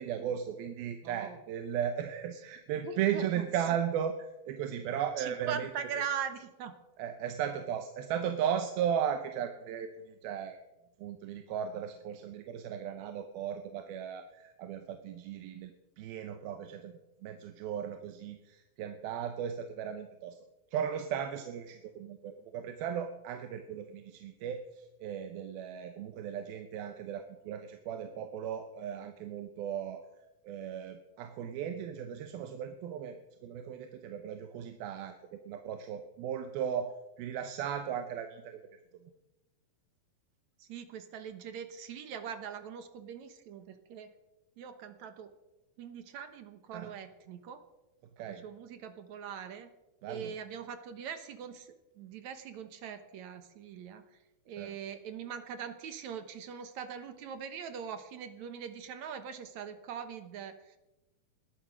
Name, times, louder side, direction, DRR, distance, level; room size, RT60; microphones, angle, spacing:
voice 1, 0.0-4.2 4.5-5.7 7.0-10.6 11.0-16.9 17.2-20.4 20.7-30.1 30.4-38.6 46.7-47.0 48.2-48.4 50.0-50.3 54.6-54.7, right 9 dB, 90° right, 7 dB, 2.8 m, -36 dB
voice 2, 1.0-1.4 2.8-3.5 5.2-6.8 40.6-44.1 44.6-45.3 45.8-47.6 48.3-49.7 50.1-54.1 54.5-60.8, right 7 dB, 65° right, 9 dB, 2.1 m, -42 dB
20.0 x 11.5 x 6.1 m, 1.0 s
omnidirectional pair, 4.2 m